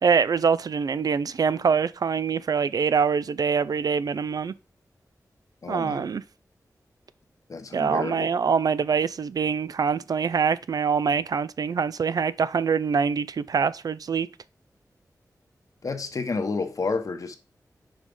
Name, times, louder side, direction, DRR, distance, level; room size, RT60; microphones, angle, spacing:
voice 1, 0.0-4.5 5.7-6.2 7.7-14.3, right 6 dB, 70° right, 0.4 m, -24 dB
voice 2, 5.6-6.0 7.5-8.3 15.8-17.4, left 4 dB, 55° left, 1.1 m, -30 dB
5.2 x 4.9 x 5.4 m
wide cardioid pair, 80°, 7 cm